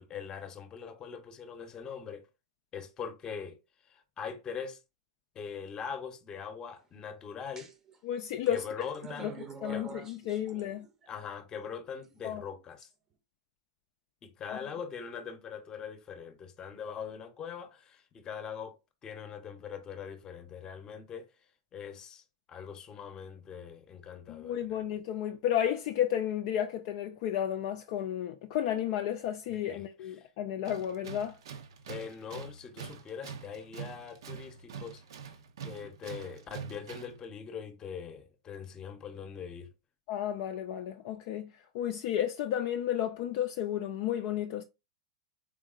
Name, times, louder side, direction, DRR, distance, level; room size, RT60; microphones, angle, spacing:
voice 1, 0.0-2.3 2.7-3.6 3.8-4.8 5.3-7.7 8.5-9.3 9.7-9.9 11.1-12.9 14.2-18.8 19.0-21.3 21.7-24.9 29.5-30.3 31.9-35.0 35.6-39.7, left 7 dB, 25° left, 0.8 m, -42 dB
sound 1, 7.6-8.0 8.5-11.1 12.0-12.9, right 5 dB, 20° right, 0.7 m, -47 dB
voice 2, 8.0-8.6 9.2-9.3 9.6-10.9 12.2-12.4 14.5-14.6 24.3-31.4 40.1-44.6, left 10 dB, 50° left, 0.4 m, -32 dB
Tools, 30.6-37.2, right 6 dB, 70° right, 0.6 m, -45 dB
3.6 x 3.5 x 2.4 m
hypercardioid pair, 105°, 3 cm